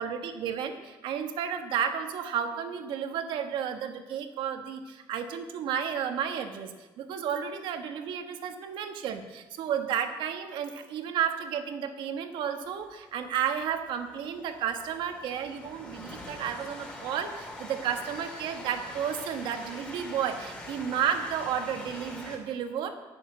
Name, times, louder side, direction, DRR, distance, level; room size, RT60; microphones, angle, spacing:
voice 1, 0.0-22.9, right 8 dB, 65° right, 6 dB, 1.4 m, -32 dB
Train, 12.6-22.4, left 1 dB, 10° left, 2.3 m, -44 dB
11.0 x 6.9 x 9.3 m, 1.2 s
cardioid pair, 160°, 9 cm